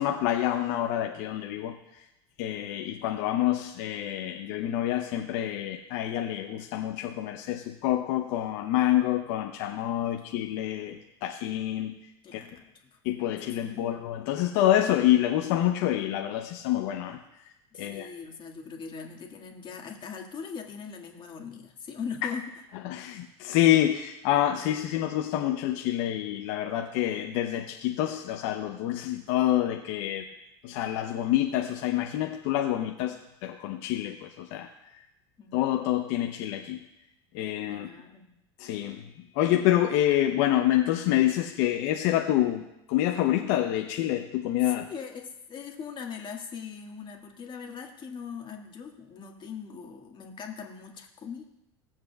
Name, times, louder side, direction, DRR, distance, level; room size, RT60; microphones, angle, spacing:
voice 1, 0.0-2.0 2.4-12.0 12.3-12.4 13.0-17.2 17.8-18.1 22.8-30.3 30.6-34.7 35.5-36.8 37.3-37.9 38.6-39.1 39.3-42.6 42.9-44.9, left 13 dB, 60° left, 4 dB, 0.8 m, -27 dB
voice 2, 12.2-13.0 13.5-14.0 17.7-22.5 22.9-23.0 35.4-35.7 37.7-38.3 44.6-51.4, left 6 dB, 35° left, 1 dB, 1.8 m, -41 dB
17.5 x 7.6 x 2.3 m, 0.89 s
hypercardioid pair, 95°, 15 cm